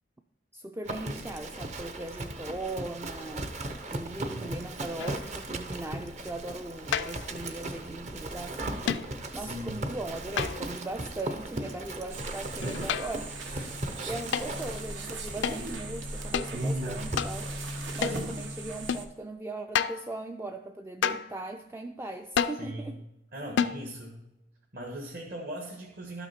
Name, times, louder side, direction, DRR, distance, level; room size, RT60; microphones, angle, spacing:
voice 1, 0.5-3.5 3.9-8.9 9.3-13.3 14.1-17.5 17.9-23.0, right 2 dB, 10° right, 5 dB, 0.3 m, -39 dB
Livestock farm animals working animals, 0.9-18.5, right 2 dB, 40° right, 0.7 m, -38 dB
sound 1, 5.0-5.4 6.9-7.3 8.9-9.2 10.4-10.9 12.6-13.3 14.3-14.5 15.4-15.6 16.3-16.5 17.2-17.4 18.0-18.3 18.9-19.1 19.8-20.1 21.0-21.4 22.4-22.7 23.6-23.9, left 7 dB, 70° left, 0.4 m, -30 dB
voice 2, 9.3-9.8 13.5-13.6 18.0-18.4 22.5-23.0 23.3-24.2 24.7-26.3, right 1 dB, 55° right, 0 dB, 1.4 m, -39 dB
sound 2, 12.1-19.0, right 1 dB, 80° right, 1.2 m, -37 dB
12.0 x 6.0 x 4.3 m, 0.97 s
head